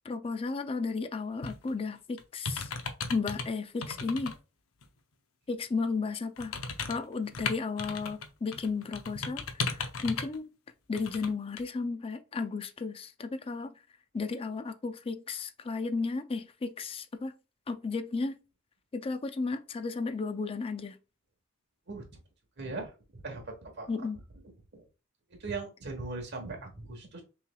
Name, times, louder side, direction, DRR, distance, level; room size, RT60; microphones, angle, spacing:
voice 1, 0.0-2.7 3.1-4.4 5.5-6.5 6.9-10.5 10.9-13.7 14.1-17.3 17.7-18.4 18.9-21.0 23.9-24.2, left 4 dB, 25° left, 0.4 m, -34 dB
sound 1, 1.4-1.7 2.2-3.5 3.8-4.3 4.8-4.9 6.4-8.3 8.5-10.4 10.9-11.3 11.6-11.7, left 4 dB, 75° left, 0.6 m, -36 dB
voice 2, 22.6-23.9 24.7-24.8 25.4-27.2, right 3 dB, 55° right, 1.2 m, -39 dB
5.6 x 3.2 x 2.3 m
head